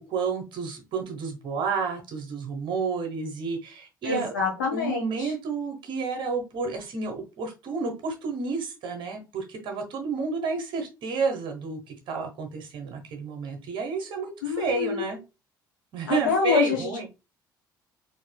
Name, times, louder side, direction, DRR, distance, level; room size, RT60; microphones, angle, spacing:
voice 1, 0.0-4.3 4.7-15.2 15.9-17.1, right 4 dB, 45° right, 4 dB, 0.9 m, -30 dB
voice 2, 4.0-5.3 14.4-15.2 16.0-17.1, left 6 dB, 70° left, 0 dB, 1.1 m, -27 dB
4.1 x 2.6 x 2.2 m, 0.27 s
figure-of-eight pair, 50°, 11 cm